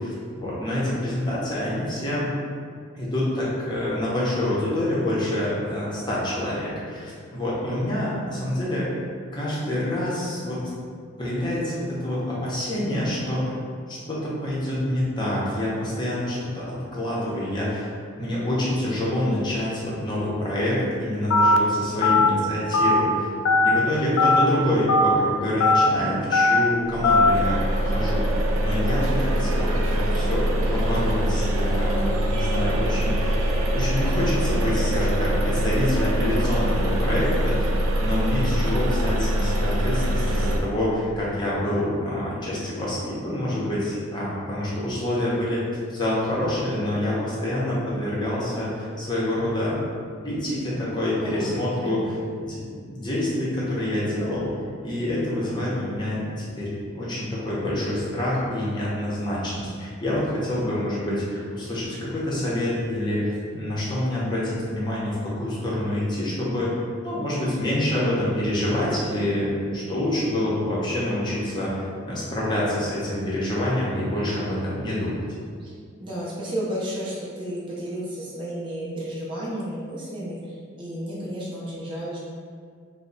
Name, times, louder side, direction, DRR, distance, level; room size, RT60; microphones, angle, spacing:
voice 1, 0.0-2.3 2.9-8.9 9.3-10.6 11.2-13.5 13.9-16.7 16.9-23.3 23.6-28.2 28.6-30.4 30.7-33.3 33.7-37.7 38.0-45.6 45.9-49.8 50.2-54.5 54.8-63.3 63.5-66.7 67.0-75.2, left 1 dB, 20° left, -7 dB, 0.7 m, -27 dB
Telephone, 21.3-21.6 22.0-22.3 22.7-23.0 23.5-23.7 24.2-24.4 24.9-25.2 25.6-25.9 26.3-26.6 27.0-27.3, left 3 dB, 75° left, 0.3 m, -18 dB
voice 2, 21.9-22.6 51.2-52.3 75.6-75.7 76.0-80.4 80.8-82.2, right 1 dB, 25° right, -8 dB, 0.6 m, -32 dB
sound 1, 26.8-40.6, equal, 80° right, 0.4 m, -23 dB
3.2 x 2.0 x 3.9 m, 2.1 s
head